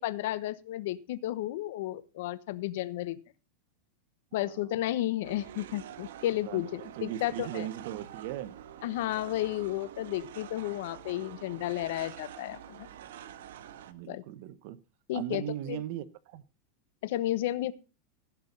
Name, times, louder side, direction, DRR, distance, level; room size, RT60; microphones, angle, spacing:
voice 1, 0.0-3.2 4.3-7.7 8.8-12.9 14.1-14.2 15.1-15.8 17.0-17.7, left 14 dB, 70° left, 1.0 m, -33 dB
voice 2, 4.3-4.8 6.5-8.6 13.9-14.8 15.1-16.4, right 12 dB, 65° right, 1.1 m, -38 dB
sound 1, 5.2-13.9, right 10 dB, 80° right, 1.3 m, -47 dB
16.0 x 6.2 x 5.5 m
supercardioid pair, 125°, 0 cm